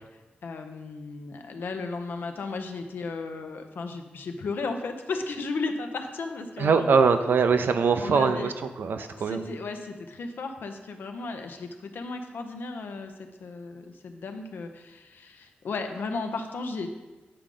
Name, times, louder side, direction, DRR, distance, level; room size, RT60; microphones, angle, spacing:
voice 1, 0.4-6.9 8.0-8.5 9.0-13.1 13.4-16.9, left 3 dB, 70° left, 6 dB, 0.7 m, -35 dB
voice 2, 6.6-8.5 8.8-9.4, right 5 dB, 70° right, 8 dB, 0.5 m, -22 dB
8.8 x 4.9 x 3.7 m, 1.2 s
wide cardioid pair, 105°, 4 cm